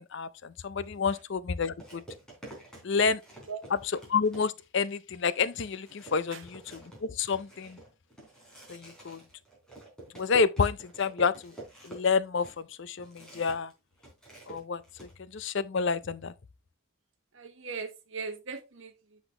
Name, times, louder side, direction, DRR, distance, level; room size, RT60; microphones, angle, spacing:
voice 1, 0.0-2.0 2.8-3.2 4.1-7.8 8.7-9.2 10.1-11.6 11.8-13.7 14.5-16.3, left 5 dB, 55° left, 0.5 m, -29 dB
sound 1, 0.8-1.0 1.8-4.8 5.2-5.3 5.6-13.7 14.0-15.1, right 2 dB, 5° left, 3.6 m, -48 dB
voice 2, 17.3-19.2, right 5 dB, 65° right, 1.4 m, -39 dB
7.9 x 6.0 x 3.3 m
head